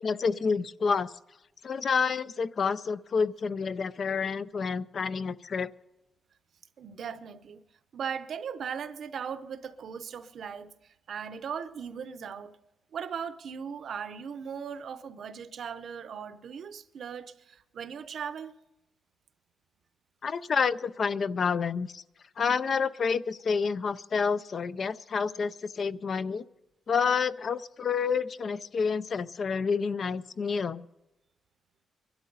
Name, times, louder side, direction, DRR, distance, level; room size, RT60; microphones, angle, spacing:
voice 1, 0.0-1.1 1.6-5.7 20.2-22.0 22.4-26.4 26.9-30.9, left 5 dB, 40° left, 0.4 m, -29 dB
voice 2, 6.8-7.6 7.9-12.6 12.9-18.5, right 7 dB, 55° right, 0.7 m, -38 dB
23.0 x 12.0 x 4.0 m
wide cardioid pair, 170°, 0 cm